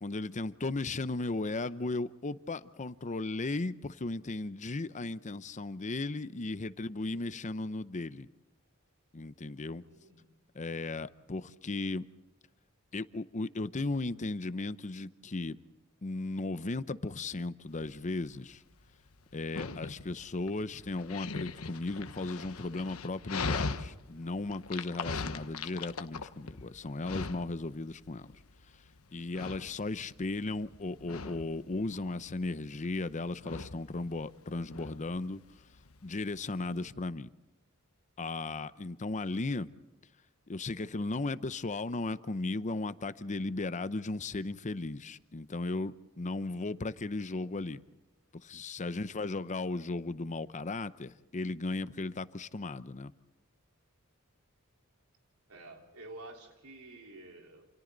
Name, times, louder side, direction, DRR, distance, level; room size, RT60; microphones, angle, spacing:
voice 1, 0.0-8.3 9.1-9.8 10.5-12.0 12.9-15.6 16.0-18.6 19.3-28.4 29.1-35.4 36.0-37.3 38.2-39.7 40.5-47.8 48.4-53.1, left 2 dB, 35° left, 0.7 m, -36 dB
voice 2, 6.6-7.5 9.8-10.4 48.8-49.6 55.5-57.7, right 2 dB, 90° right, 4.0 m, -52 dB
Dog, 17.7-36.9, left 4 dB, 85° left, 1.2 m, -41 dB
28.5 x 28.0 x 4.0 m
head